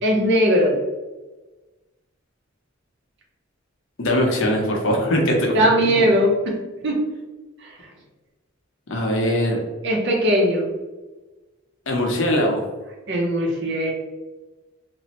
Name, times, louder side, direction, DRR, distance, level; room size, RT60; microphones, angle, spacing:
voice 1, 0.0-0.8 5.5-6.6 6.8-7.0 7.6-7.7 9.8-10.7 13.1-13.9, equal, 55° right, 0 dB, 0.6 m, -19 dB
voice 2, 4.0-6.1 8.9-9.6 11.9-12.6, equal, 65° left, 0 dB, 0.6 m, -21 dB
2.9 x 2.0 x 2.8 m, 1.2 s
head